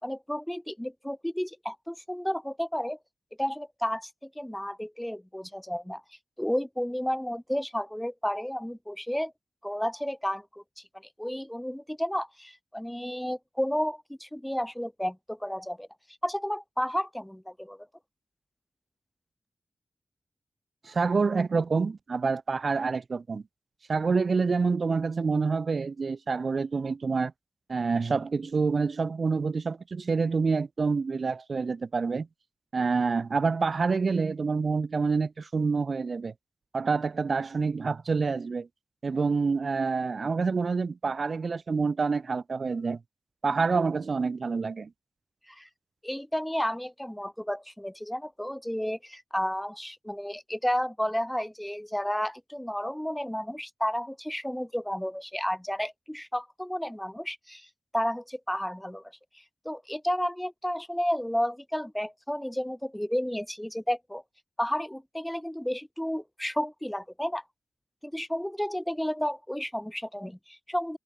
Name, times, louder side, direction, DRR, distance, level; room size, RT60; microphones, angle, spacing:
voice 1, 0.0-3.0 3.4-6.0 6.4-9.3 9.6-10.8 11.2-15.9 16.2-17.9 45.5-45.7 46.0-64.2 64.6-67.4 68.0-71.0, equal, 5° left, 3.5 m, -32 dB
voice 2, 20.8-23.4 23.9-27.3 27.7-32.3 32.7-36.3 36.7-38.7 39.0-43.0 43.4-44.9, right 4 dB, 50° right, 1.8 m, -27 dB
wide cardioid pair, 130°, 0 cm